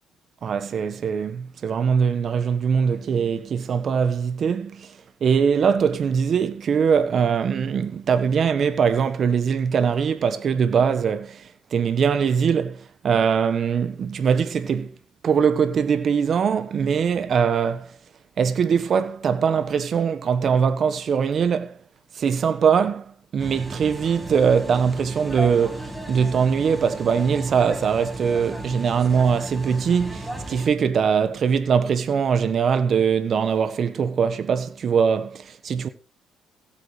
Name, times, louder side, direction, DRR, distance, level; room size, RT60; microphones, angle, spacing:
voice 1, 0.4-4.9 5.2-14.9 15.2-18.0 18.4-21.7 22.1-35.9, right 6 dB, 55° right, 1.3 m, -22 dB
sound 1, 23.4-30.7, right 1 dB, 10° right, 6.2 m, -35 dB
16.5 x 8.6 x 3.4 m
supercardioid pair, 75°, 0 cm